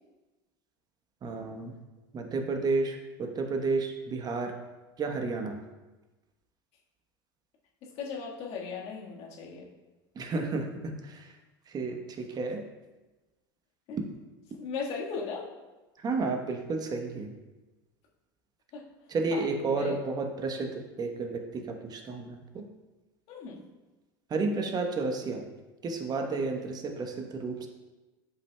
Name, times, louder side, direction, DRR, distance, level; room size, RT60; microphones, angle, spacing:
voice 1, 1.2-1.7 2.1-4.5 5.0-5.6 10.1-11.3 11.7-12.6 16.0-17.3 19.1-22.6 24.3-25.4 25.8-27.7, right 3 dB, 30° right, 4 dB, 1.1 m, -31 dB
voice 2, 7.8-9.7 13.9-14.0 14.6-15.5 18.7-18.8 19.3-19.9 23.3-23.6, left 5 dB, 55° left, -2 dB, 1.7 m, -37 dB
11.0 x 5.2 x 2.3 m, 1.1 s
hypercardioid pair, 85°, 13 cm